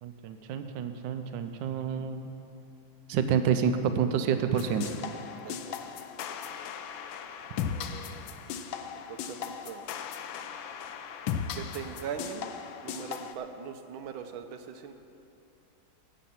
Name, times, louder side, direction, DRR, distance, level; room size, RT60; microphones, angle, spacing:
voice 1, 0.0-2.3 3.1-5.0, right 7 dB, 75° right, 7 dB, 1.3 m, -28 dB
sound 1, 4.5-13.3, left 7 dB, 75° left, 1.4 m, -37 dB
voice 2, 5.4-5.8 7.7-8.3 9.1-10.1 11.5-12.5 12.8-14.9, right 7 dB, 90° right, 7 dB, 1.5 m, -41 dB
13.0 x 8.4 x 5.8 m, 2.6 s
omnidirectional pair, 2.2 m